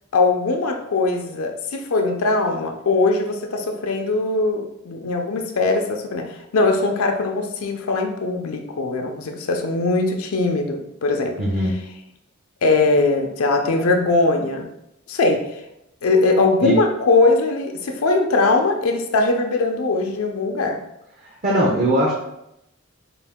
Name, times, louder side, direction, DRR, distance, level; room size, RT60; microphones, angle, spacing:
voice 1, 0.1-11.4 12.6-14.7 15.1-15.5 16.0-20.8, left 3 dB, 85° left, 4 dB, 0.5 m, -20 dB
voice 2, 11.4-11.7 16.6-16.7 21.2-22.1, equal, 40° right, -3 dB, 0.6 m, -20 dB
3.8 x 2.4 x 3.5 m, 0.83 s
head